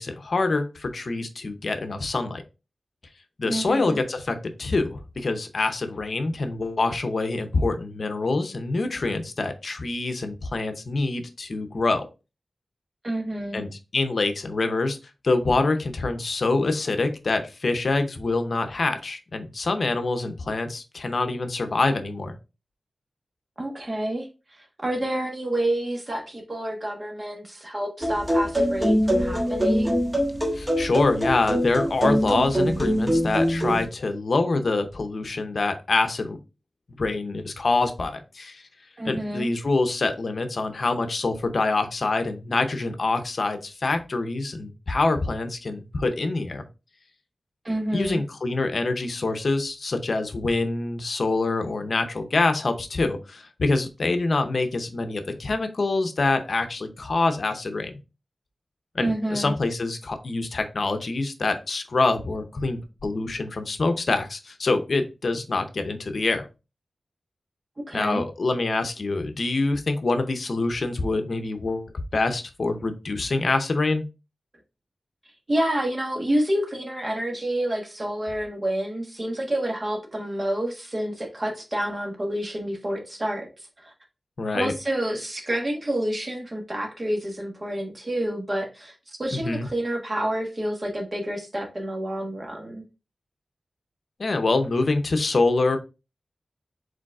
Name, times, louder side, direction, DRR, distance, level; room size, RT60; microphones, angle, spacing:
voice 1, 0.0-2.4 3.4-12.0 13.5-15.0 15.2-22.3 30.5-36.4 37.0-38.6 39.0-46.6 47.9-57.9 58.9-66.4 67.9-74.0 84.4-84.7 89.3-89.7 94.2-95.8, left 3 dB, 65° left, 7 dB, 0.6 m, -25 dB
voice 2, 3.5-4.0 13.0-13.6 23.6-30.0 39.0-39.5 47.6-48.2 59.0-59.5 67.8-68.2 75.5-83.9 84.5-92.8, right 1 dB, 35° right, 1 dB, 1.3 m, -28 dB
sound 1, 28.0-33.8, equal, 15° right, 1.2 m, -23 dB
5.0 x 3.9 x 2.4 m, 0.29 s
wide cardioid pair, 105°, 0 cm